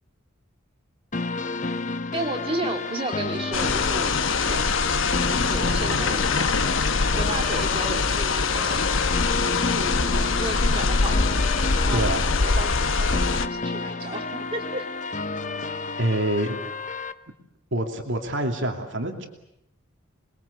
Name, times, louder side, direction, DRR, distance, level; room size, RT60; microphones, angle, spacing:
sound 1, 1.1-17.1, left 3 dB, 35° left, 0.9 m, -31 dB
voice 1, 2.1-4.7 5.3-9.0 9.7-11.3 11.7-12.2 12.4-14.9, right 2 dB, 25° right, 4 dB, 2.5 m, -33 dB
sound 2, 3.5-13.5, left 4 dB, 70° left, 1.0 m, -23 dB
voice 2, 16.0-16.6 17.7-19.3, right 1 dB, 60° right, 3 dB, 2.7 m, -26 dB
28.5 x 21.5 x 8.3 m, 0.82 s
head